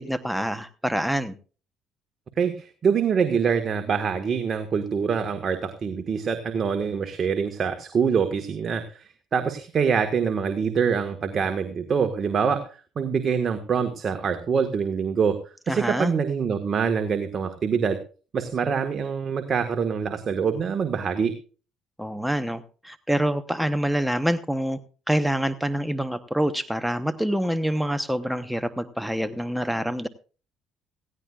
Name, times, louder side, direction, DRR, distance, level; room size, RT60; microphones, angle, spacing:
voice 1, 0.0-1.3 15.7-16.1 22.0-24.8 25.1-30.1, equal, ahead, 11 dB, 0.9 m, -26 dB
voice 2, 2.4-12.6 12.9-15.4 15.7-18.0 18.3-21.3, right 6 dB, 45° right, 7 dB, 1.5 m, -25 dB
17.5 x 15.5 x 2.4 m, 0.37 s
supercardioid pair, 75°, 0 cm